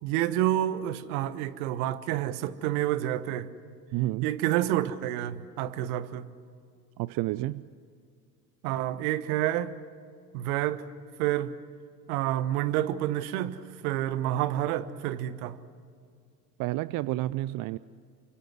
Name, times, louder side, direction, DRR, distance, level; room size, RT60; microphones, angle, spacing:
voice 1, 0.0-3.5 4.2-6.3 8.6-9.7 10.3-10.9 11.2-11.6 12.1-15.6, right 13 dB, 60° right, 1.3 m, -29 dB
voice 2, 3.9-4.3 7.0-7.7 16.6-17.8, right 17 dB, 45° right, 0.6 m, -30 dB
29.5 x 25.0 x 6.2 m
figure-of-eight pair, 60°, 49 cm